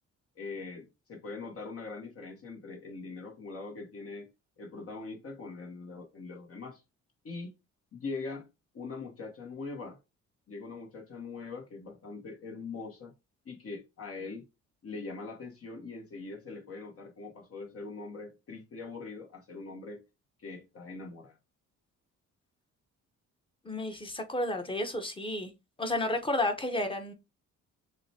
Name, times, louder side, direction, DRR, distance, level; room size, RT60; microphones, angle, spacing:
voice 1, 0.4-4.3 4.6-6.8 7.2-7.5 7.9-8.5 8.7-10.0 10.5-13.1 13.4-14.4 14.8-20.0 20.4-21.4, left 4 dB, 50° left, 1.1 m, -42 dB
voice 2, 23.6-25.5 25.8-27.1, left 1 dB, 15° left, 1.0 m, -31 dB
6.3 x 2.2 x 2.8 m
cardioid pair, 90°, 30 cm